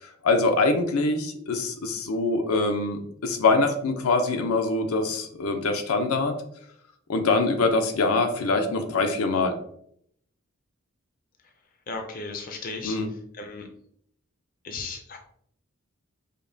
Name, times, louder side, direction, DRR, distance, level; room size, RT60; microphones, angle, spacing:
voice 1, 0.0-6.3 7.1-9.6 12.8-13.1, left 3 dB, 90° left, 6 dB, 0.6 m, -24 dB
voice 2, 11.9-13.0 13.4-13.7 14.6-15.2, left 4 dB, 40° left, 4 dB, 0.4 m, -35 dB
5.1 x 2.2 x 2.6 m, 0.68 s
head